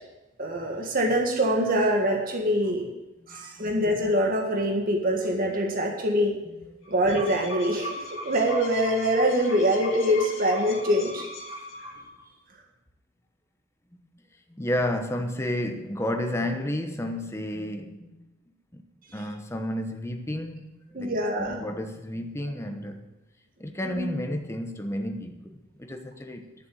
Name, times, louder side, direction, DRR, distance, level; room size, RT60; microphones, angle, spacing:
voice 1, 0.4-2.8 3.3-6.3 6.9-11.3 20.9-21.6 23.8-24.2, equal, 45° right, 1.8 m, -24 dB
voice 2, 3.2-3.7 6.4-6.7 14.5-18.3 18.7-18.8 19.1-23.1 23.6-26.5, left 1 dB, 15° left, 1.0 m, -32 dB
sound 1, 6.8-12.2, left 2 dB, 65° left, 2.2 m, -38 dB
11.0 x 7.0 x 7.8 m
head